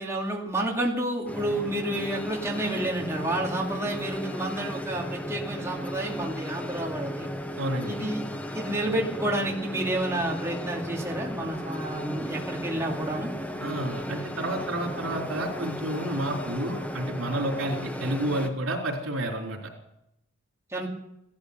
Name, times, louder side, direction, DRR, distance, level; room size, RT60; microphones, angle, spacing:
voice 1, 0.0-7.3 7.8-8.2 8.5-13.3 20.7-20.9, right 1 dB, 15° right, -2 dB, 2.5 m, -30 dB
sound 1, 1.3-18.5, equal, 10° left, 1.1 m, -35 dB
voice 2, 7.6-8.0 13.6-19.6, right 1 dB, 80° right, 0 dB, 4.0 m, -30 dB
16.5 x 13.0 x 6.8 m, 0.82 s
head